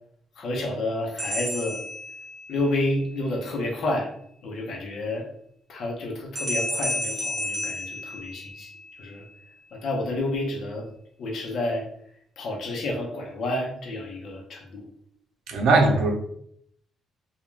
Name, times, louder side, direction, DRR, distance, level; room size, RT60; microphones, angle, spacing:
voice 1, 0.4-1.8 2.5-4.1 4.4-5.3 5.7-9.2 9.7-10.9 11.2-11.9 12.4-14.9, left 1 dB, 60° left, 0 dB, 0.8 m, -30 dB
sound 1, 1.2-2.7 6.4-8.9, left 1 dB, 25° right, 0.7 m, -31 dB
voice 2, 15.5-16.1, right 3 dB, 90° right, 2 dB, 0.6 m, -19 dB
2.4 x 2.2 x 3.1 m, 0.69 s
cardioid pair, 135°, 0 cm